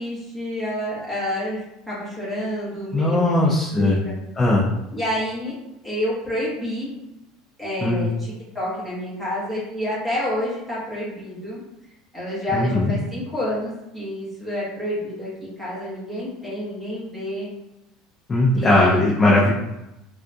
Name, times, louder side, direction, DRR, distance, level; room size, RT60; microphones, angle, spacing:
voice 1, 0.0-4.1 4.9-5.5 5.8-6.9 7.6-11.6 12.1-17.5 18.5-19.1, equal, ahead, -10 dB, 1.2 m, -29 dB
voice 2, 2.9-4.0 4.4-4.7 7.8-8.0 12.5-12.9 18.3-19.5, left 2 dB, 15° left, -7 dB, 0.5 m, -18 dB
3.6 x 2.3 x 2.6 m, 0.92 s
cardioid pair, 170°, 0 cm